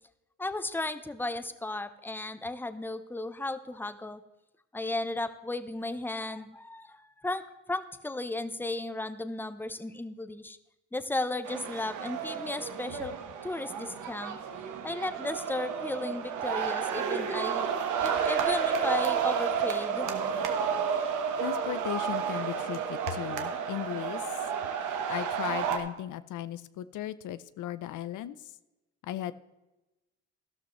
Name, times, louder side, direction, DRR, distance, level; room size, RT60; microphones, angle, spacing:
voice 1, 0.4-4.2 4.7-10.6 10.9-13.2 13.4-14.4 14.8-17.7 18.0-20.1, left 2 dB, 5° left, 11 dB, 0.8 m, -35 dB
sound 1, 11.5-25.8, right 7 dB, 85° right, 1.4 m, -31 dB
voice 2, 21.4-24.5 25.1-28.5 29.0-29.3, left 13 dB, 80° left, 14 dB, 0.6 m, -36 dB
12.5 x 12.5 x 3.2 m, 1.0 s
cardioid pair, 90°, 30 cm